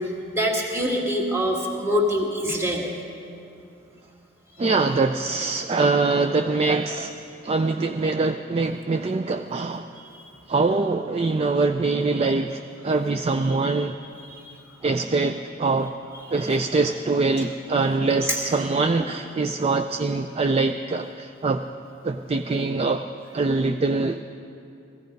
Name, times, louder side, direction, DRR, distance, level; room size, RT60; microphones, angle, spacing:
voice 1, 0.0-2.9 10.0-10.2 13.6-13.9 14.3-14.6 16.3-16.4 18.3-18.4, equal, 15° right, -1 dB, 1.9 m, -25 dB
voice 2, 4.6-7.2 7.4-9.9 10.5-14.0 14.8-15.9 16.3-21.7 22.0-23.0 23.3-24.2, right 3 dB, 30° right, 7 dB, 0.4 m, -23 dB
15.5 x 15.5 x 5.2 m, 2.6 s
head